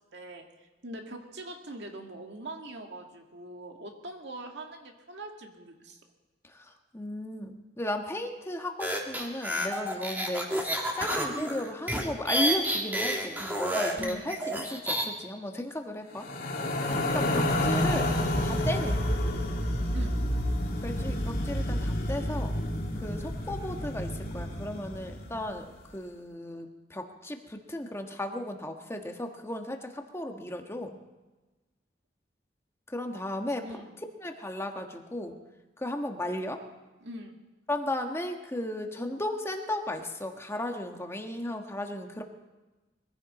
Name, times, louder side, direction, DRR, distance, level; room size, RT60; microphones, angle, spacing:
voice 1, 0.1-0.4 0.8-6.0 14.0-14.4 16.9-17.1 19.9-20.2 33.6-34.0 37.0-37.4, right 1 dB, 75° right, 3 dB, 2.0 m, -42 dB
voice 2, 6.4-16.3 17.1-18.2 18.4-19.0 20.8-22.5 23.0-31.0 32.9-33.8 34.2-35.4 35.8-36.7 37.7-42.2, left 1 dB, 15° left, 4 dB, 1.4 m, -35 dB
sound 1, 8.8-15.1, equal, 10° right, 2.1 m, -30 dB
sound 2, 16.2-25.5, left 1 dB, 55° left, 2.3 m, -29 dB
22.0 x 15.5 x 4.2 m, 1.2 s
head